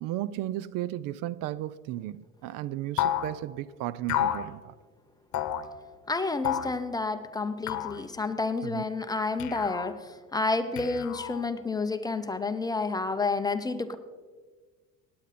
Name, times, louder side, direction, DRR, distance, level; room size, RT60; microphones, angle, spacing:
voice 1, 0.0-4.7 8.6-8.8, right 14 dB, 70° right, 0.5 m, -34 dB
sound 1, 3.0-3.3 4.1-4.5 5.3-5.6 6.4-6.8 7.7-8.0 9.4-9.9 10.8-11.5, left 11 dB, 55° left, 1.1 m, -30 dB
voice 2, 6.1-14.0, left 3 dB, 10° left, 0.7 m, -30 dB
17.5 x 9.5 x 4.2 m
cardioid pair, 130°, 35 cm